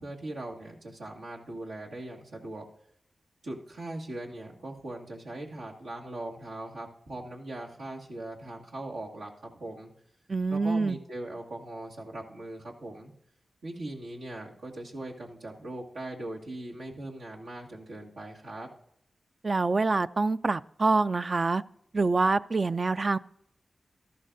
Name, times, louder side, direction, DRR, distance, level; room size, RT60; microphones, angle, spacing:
voice 1, 0.0-2.6 3.4-9.9 10.5-13.1 13.6-18.7, right 1 dB, 90° right, 1.9 m, -40 dB
voice 2, 10.3-11.0 19.4-21.6 21.9-23.2, right 3 dB, 45° right, 0.3 m, -26 dB
13.5 x 12.0 x 2.6 m
cardioid pair, 50°, 0 cm